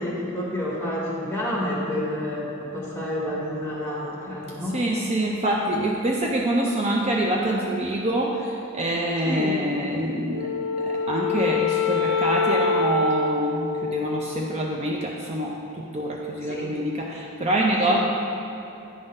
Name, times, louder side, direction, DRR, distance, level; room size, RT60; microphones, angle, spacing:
voice 1, 0.0-4.8 9.2-9.6 16.5-16.7 17.9-18.0, left 1 dB, 10° left, -5 dB, 1.5 m, -29 dB
voice 2, 4.7-10.5 10.8-18.0, right 1 dB, 30° right, -1 dB, 0.4 m, -25 dB
Wind instrument woodwind instrument, 10.3-14.8, left 5 dB, 60° left, 0.6 m, -25 dB
9.7 x 3.7 x 5.3 m, 2.8 s
head